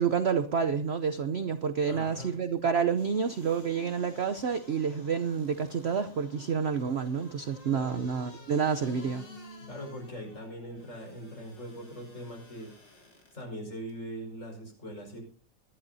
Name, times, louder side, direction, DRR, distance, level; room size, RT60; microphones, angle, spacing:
voice 1, 0.0-9.2, right 6 dB, 55° right, 9 dB, 0.7 m, -29 dB
voice 2, 1.9-2.4 7.7-8.0 9.6-12.7 13.3-15.2, equal, 45° left, 1 dB, 5.7 m, -41 dB
sound 1, 2.9-13.4 13.9-14.0, left 2 dB, 90° left, 4.0 m, -52 dB
22.0 x 11.0 x 2.7 m, 0.42 s
omnidirectional pair, 1.9 m